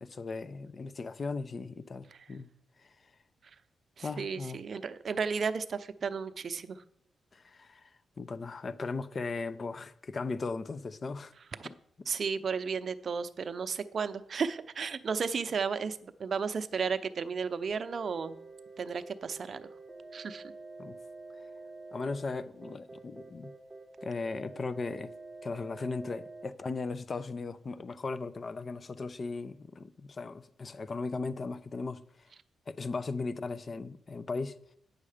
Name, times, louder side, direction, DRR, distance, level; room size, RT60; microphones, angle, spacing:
voice 1, 0.0-2.5 2.8-2.9 4.0-4.6 7.3-7.9 8.2-11.3 11.6-11.7 20.8-21.0 21.9-23.5 24.0-25.1 25.4-32.3 32.7-34.6, left 3 dB, 45° left, 0.6 m, -37 dB
voice 2, 4.0-6.8 11.6-11.7 12.1-18.4 18.8-19.7 20.1-20.4, right 5 dB, 55° right, 0.6 m, -33 dB
sound 1, 17.7-26.4, right 3 dB, 20° right, 0.8 m, -48 dB
8.6 x 6.5 x 5.0 m
cardioid pair, 70°, 0 cm